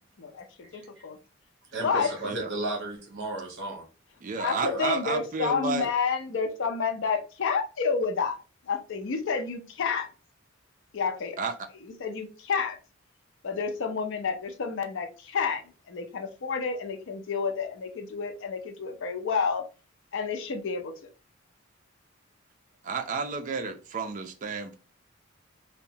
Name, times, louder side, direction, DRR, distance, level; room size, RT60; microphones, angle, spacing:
voice 1, 0.2-1.2 1.8-2.1 4.3-10.1 10.9-11.4 11.8-12.8 13.4-19.6 20.1-20.9, left 5 dB, 65° left, 0.5 m, -30 dB
voice 2, 0.7-1.1 1.7-3.9 4.6-4.8, right 2 dB, 60° right, 0.8 m, -34 dB
voice 3, 4.2-5.9 11.4-11.5 22.8-24.8, right 4 dB, 40° right, 0.4 m, -31 dB
2.8 x 2.1 x 2.7 m
head